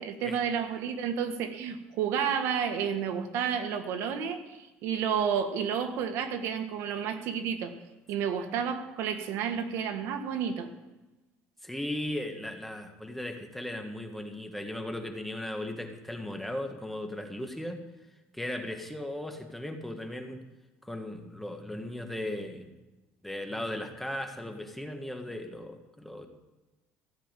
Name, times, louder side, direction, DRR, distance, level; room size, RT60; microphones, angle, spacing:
voice 1, 0.0-7.7 8.1-10.7, right 7 dB, 70° right, 7 dB, 1.6 m, -31 dB
voice 2, 11.6-17.8 18.3-20.4 20.8-22.7 23.2-26.3, left 1 dB, 5° left, 4 dB, 1.6 m, -37 dB
15.5 x 7.5 x 9.1 m, 1.1 s
cardioid pair, 135°, 5 cm